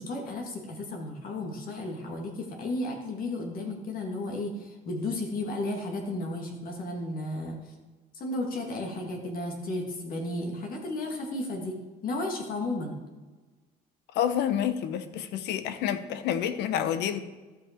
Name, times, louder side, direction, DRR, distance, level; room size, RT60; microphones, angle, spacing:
voice 1, 0.0-7.6 8.1-13.0, left 2 dB, 60° left, 2 dB, 2.0 m, -33 dB
voice 2, 14.1-17.2, left 9 dB, 80° left, 11 dB, 0.8 m, -28 dB
13.5 x 5.7 x 4.4 m, 1.3 s
cardioid pair, 110°, 17 cm